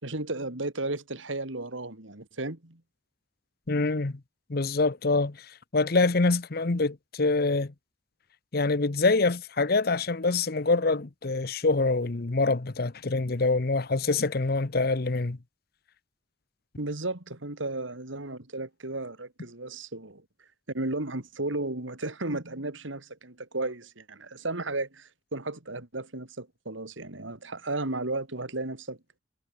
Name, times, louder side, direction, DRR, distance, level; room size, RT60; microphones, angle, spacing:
voice 1, 0.0-2.8 16.8-20.2 20.7-29.0, right 2 dB, 85° right, 2.9 m, -34 dB
voice 2, 3.7-4.1 4.5-5.4 5.7-7.7 8.5-15.4, left 3 dB, 55° left, 0.9 m, -25 dB
head